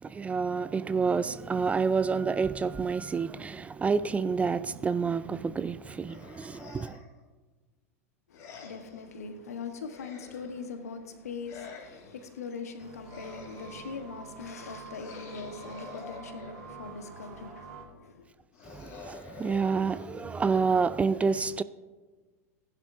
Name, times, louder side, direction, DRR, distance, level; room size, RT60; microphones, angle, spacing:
voice 1, 0.0-7.0 18.7-21.6, right 5 dB, 15° right, 0.3 m, -28 dB
sound 1, 6.1-7.2 8.3-9.1 9.8-10.8 11.4-12.3 13.0-14.1 14.9-17.0 18.5-20.9, left 5 dB, 45° left, 3.2 m, -48 dB
voice 2, 8.3-18.3, left 5 dB, 75° left, 1.2 m, -41 dB
sound 2, 12.8-17.8, right 4 dB, 55° right, 3.2 m, -47 dB
16.5 x 11.0 x 2.7 m
figure-of-eight pair, 90°, 8 cm